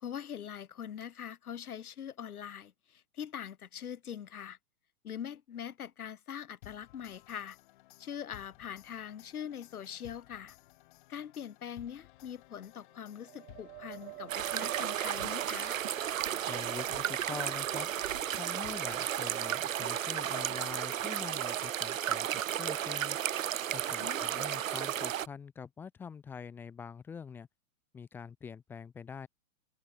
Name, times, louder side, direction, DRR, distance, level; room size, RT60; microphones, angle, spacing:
voice 1, 0.0-4.6 5.0-7.6 8.0-10.6 11.1-15.8 24.0-24.4, left 9 dB, 80° left, 3.8 m, -43 dB
sound 1, 6.6-20.7, left 19 dB, 35° left, 4.6 m, -57 dB
sound 2, 13.1-16.4, right 21 dB, 20° right, 2.9 m, -46 dB
sound 3, 14.3-25.3, right 10 dB, 60° right, 2.0 m, -33 dB
voice 2, 16.5-17.9 18.3-23.2 23.7-27.5 27.9-29.3, left 6 dB, 5° left, 0.8 m, -45 dB
hypercardioid pair, 170°, 43 cm